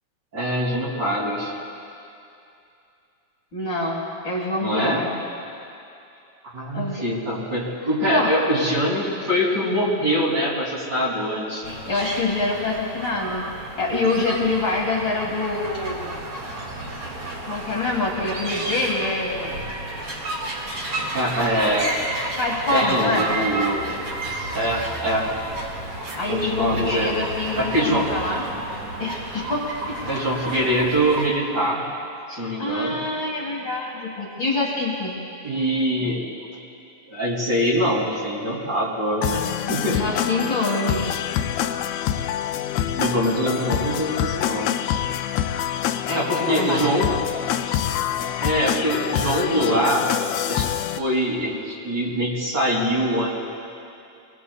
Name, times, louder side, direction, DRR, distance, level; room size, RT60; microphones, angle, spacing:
voice 1, 0.3-1.5 4.6-5.0 6.5-12.0 21.1-21.9 22.7-24.0 24.5-25.3 26.3-27.1 27.6-28.1 30.1-31.9 32.3-33.0 35.4-36.2 37.1-40.1 43.0-44.7 46.1-47.2 48.4-50.1 50.5-53.3, equal, 35° right, -5 dB, 3.4 m, -23 dB
voice 2, 3.5-5.1 6.7-7.0 8.1-8.3 11.6-16.2 17.5-19.6 22.4-23.4 26.1-28.4 29.0-29.9 32.3-35.1 39.9-41.1 46.1-46.8, left 2 dB, 45° left, -4 dB, 2.6 m, -25 dB
sound 1, 11.6-31.3, right 2 dB, 55° right, 3.0 m, -32 dB
sound 2, 39.2-51.0, left 10 dB, 80° left, 1.7 m, -26 dB
26.5 x 19.5 x 2.4 m, 2.6 s
omnidirectional pair, 3.3 m